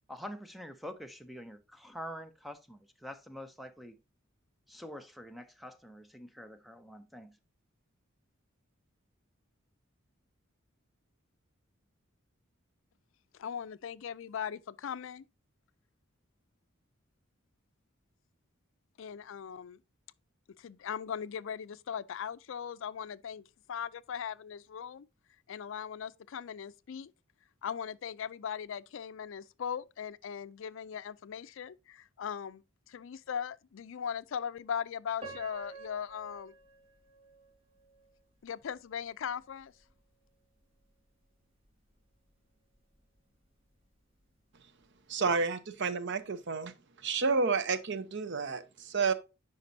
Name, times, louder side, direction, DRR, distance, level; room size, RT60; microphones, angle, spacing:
voice 1, 0.1-4.0 4.7-7.4, equal, ahead, 0.5 m, -46 dB
voice 2, 13.4-15.2 19.0-19.8 20.6-25.1 25.5-27.1 27.6-32.6 32.9-36.5 38.4-39.7, left 7 dB, 65° left, 0.4 m, -39 dB
Piano, 35.2-38.2 38.8-38.9 39.5-39.8, right 3 dB, 30° right, 3.2 m, -49 dB
voice 3, 45.1-46.7 47.0-49.1, right 4 dB, 60° right, 0.7 m, -30 dB
9.3 x 5.2 x 2.6 m
head